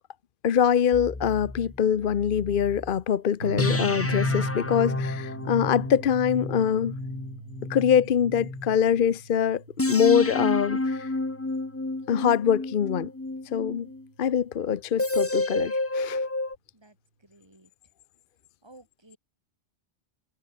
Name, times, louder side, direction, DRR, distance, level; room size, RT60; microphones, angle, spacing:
voice 1, 0.4-6.9 7.7-11.1 12.1-13.1 13.5-13.9 14.2-16.2, left 8 dB, 55° left, 0.9 m, -24 dB
sound 1, 0.9-2.9 3.6-8.8 9.8-14.0 15.0-16.6, left 2 dB, 15° left, 0.8 m, -30 dB
sound 2, 3.4-12.5 13.9-14.5, right 3 dB, 80° right, 3.5 m, -41 dB
voice 2, 17.2-17.7 18.6-19.2, right 2 dB, 25° right, 3.3 m, -54 dB
omnidirectional pair, 1.1 m